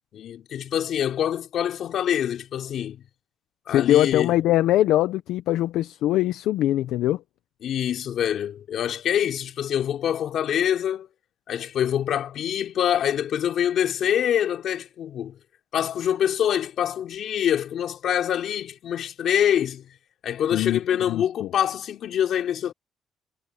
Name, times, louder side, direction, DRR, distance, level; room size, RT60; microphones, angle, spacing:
voice 1, 0.1-3.0 3.7-4.3 7.6-11.1 11.5-15.4 15.7-19.9 20.2-22.7, left 10 dB, 70° left, 3.1 m, -25 dB
voice 2, 3.7-7.2 20.5-20.8 21.1-21.5, left 13 dB, 90° left, 0.6 m, -22 dB
cardioid pair, 90°, 0 cm